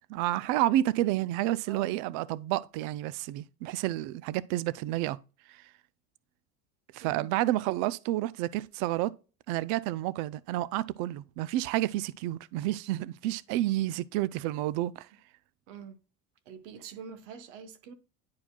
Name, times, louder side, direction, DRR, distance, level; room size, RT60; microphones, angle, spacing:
voice 1, 0.1-5.2 5.5-5.7 6.9-9.1 9.5-15.1, right 15 dB, 60° right, 0.4 m, -30 dB
voice 2, 7.0-7.3 15.7-16.0 16.5-17.9, right 6 dB, 75° right, 1.1 m, -45 dB
10.5 x 4.8 x 2.2 m
cardioid pair, 165°, 36 cm